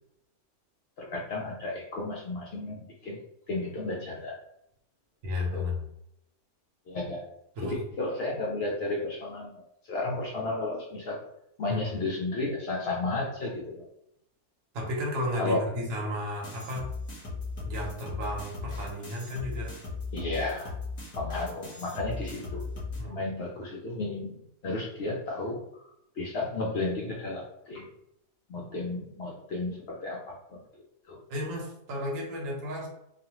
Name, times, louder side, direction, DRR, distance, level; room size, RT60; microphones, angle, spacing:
voice 1, 1.0-3.2 3.5-4.4 5.5-5.7 6.9-7.3 7.6-9.6 9.9-11.2 11.6-13.8 15.4-15.6 20.1-20.8 21.2-22.7 23.0-25.6 26.2-27.9 28.5-30.6 31.1-31.2, left 2 dB, 70° left, -2 dB, 0.6 m, -33 dB
voice 2, 5.2-5.9 7.6-7.8 11.7-11.9 14.7-16.9 17.6-19.8 23.0-23.2 31.3-32.9, left 1 dB, 65° right, -1 dB, 1.1 m, -33 dB
sound 1, 16.4-23.0, left 3 dB, 30° left, 0.6 m, -37 dB
2.4 x 2.4 x 2.9 m, 0.79 s
omnidirectional pair, 1.6 m